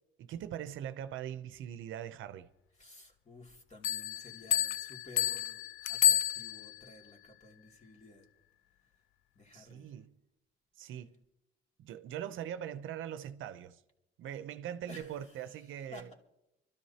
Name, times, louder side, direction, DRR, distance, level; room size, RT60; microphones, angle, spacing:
voice 1, 0.2-2.5 9.5-10.1 10.8-11.2 11.8-13.8 14.2-16.1, right 10 dB, 80° right, 0.6 m, -41 dB
voice 2, 2.8-5.6 5.9-8.3 9.3-9.9 14.9-16.1, left 2 dB, 35° left, 2.6 m, -53 dB
Bell, 3.8-6.9, left 11 dB, 85° left, 0.4 m, -30 dB
25.5 x 13.0 x 2.8 m
cardioid pair, 90°, 20 cm